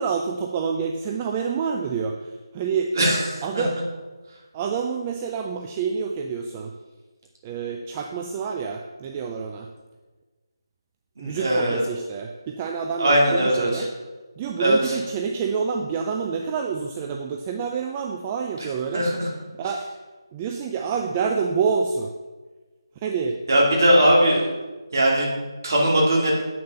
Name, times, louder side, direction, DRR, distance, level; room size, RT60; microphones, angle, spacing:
voice 1, 0.0-2.9 3.4-3.7 4.5-6.7 7.4-9.7 11.2-13.9 14.4-19.0 19.6-19.9 20.3-22.1 23.0-23.4, right 6 dB, 15° right, 3 dB, 0.3 m, -27 dB
voice 2, 3.0-3.6 11.2-11.8 13.0-13.9 14.6-15.0 18.9-19.3 23.5-24.4 24.9-26.4, right 1 dB, 45° right, -3 dB, 2.6 m, -20 dB
8.6 x 6.6 x 5.5 m, 1.3 s
figure-of-eight pair, 170°, 2 cm